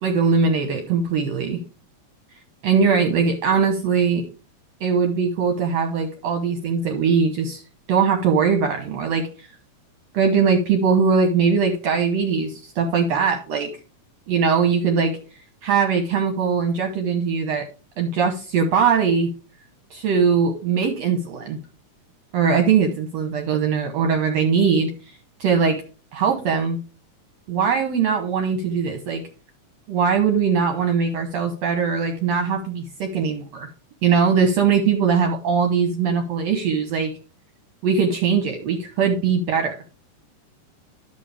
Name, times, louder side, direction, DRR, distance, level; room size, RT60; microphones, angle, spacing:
voice 1, 0.0-1.6 2.6-4.3 4.8-7.6 7.9-9.5 10.1-13.7 14.3-15.1 15.6-17.7 18.0-19.3 19.9-21.6 22.3-25.8 26.1-26.8 27.5-29.2 29.9-33.7 34.0-37.1 37.8-39.8, right 6 dB, 65° right, 4 dB, 1.8 m, -21 dB
10.5 x 7.0 x 3.4 m, 0.35 s
omnidirectional pair, 3.7 m